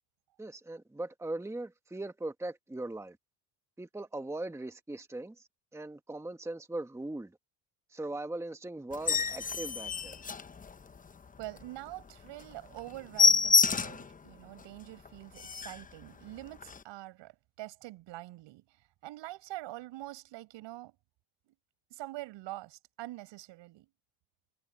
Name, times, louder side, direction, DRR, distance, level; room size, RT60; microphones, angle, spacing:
voice 1, 0.4-3.2 3.8-7.4 7.9-10.2, right 2 dB, 5° right, 1.4 m, -40 dB
sound 1, 8.9-11.1 11.5-11.6 12.0-12.1 12.4-12.5 12.8-14.1 14.6-14.7 15.1-15.2 15.4-15.9 16.6-16.8, left 5 dB, 20° left, 0.9 m, -27 dB
voice 2, 11.4-21.0 21.5-21.6 21.9-23.9, right 17 dB, 70° right, 6.8 m, -45 dB
cardioid pair, 115°, 45 cm